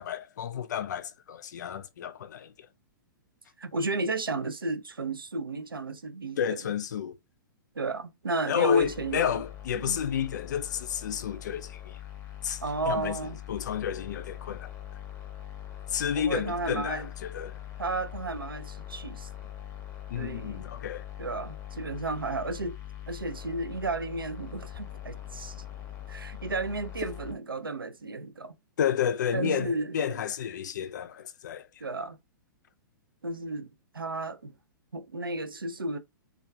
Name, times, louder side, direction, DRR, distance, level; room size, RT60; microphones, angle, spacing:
voice 1, 0.0-2.5 6.4-7.2 8.5-12.0 12.4-12.6 12.9-13.2 13.5-14.7 15.9-17.1 17.3-17.5 20.1-21.0 28.8-31.7, left 8 dB, 55° left, 0.4 m, -31 dB
voice 2, 3.6-6.6 7.8-9.5 9.7-10.0 12.6-13.4 16.1-17.1 17.8-19.3 20.1-20.6 21.2-22.8 23.1-25.6 26.1-28.5 29.3-30.2 31.8-32.2 33.2-33.7 33.9-34.5 34.9-36.0, right 2 dB, 85° right, 0.4 m, -33 dB
sound 1, 8.8-27.3, left 11 dB, 20° left, 0.6 m, -42 dB
2.3 x 2.2 x 3.2 m
figure-of-eight pair, 110°, 11 cm